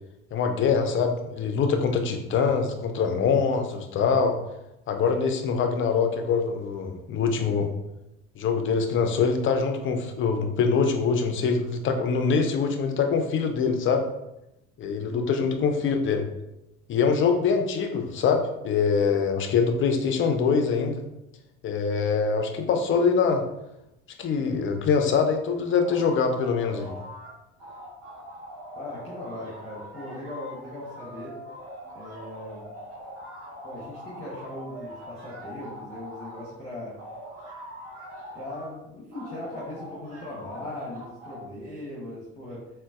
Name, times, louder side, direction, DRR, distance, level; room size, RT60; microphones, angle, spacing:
voice 1, 0.3-4.4 4.9-7.7 8.4-14.1 14.8-16.3 16.9-21.0 21.6-23.4 24.2-26.9, left 5 dB, 35° left, 6 dB, 0.5 m, -24 dB
voice 2, 15.1-15.5 28.7-31.4 31.9-32.6 33.6-37.0 38.3-42.7, left 1 dB, 20° left, -6 dB, 1.0 m, -39 dB
sound 1, 25.7-27.3 27.6-36.5 36.9-38.7 39.1-41.4, equal, 45° right, 1.2 m, -42 dB
3.8 x 2.1 x 2.4 m, 0.90 s
hypercardioid pair, 65°, 35 cm